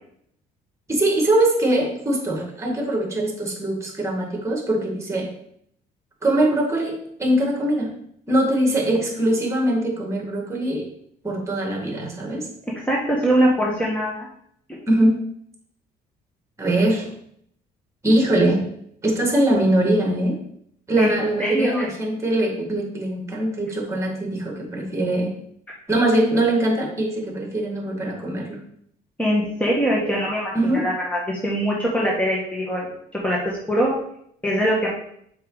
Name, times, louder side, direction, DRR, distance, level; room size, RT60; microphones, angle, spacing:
voice 1, 0.9-5.3 6.2-7.9 8.3-10.9 11.2-12.5 14.9-15.2 16.6-17.1 18.0-18.6 19.0-20.4 20.9-25.3 25.9-28.6 30.5-30.9, right 1 dB, 15° right, 1 dB, 2.1 m, -22 dB
voice 2, 12.7-14.3 14.7-14.8 21.0-21.1 21.4-21.9 29.2-32.9 33.2-33.4 33.7-33.9 34.4-34.9, equal, 10° left, -4 dB, 1.5 m, -22 dB
6.5 x 5.0 x 4.1 m, 0.69 s
cardioid pair, 110°, 17 cm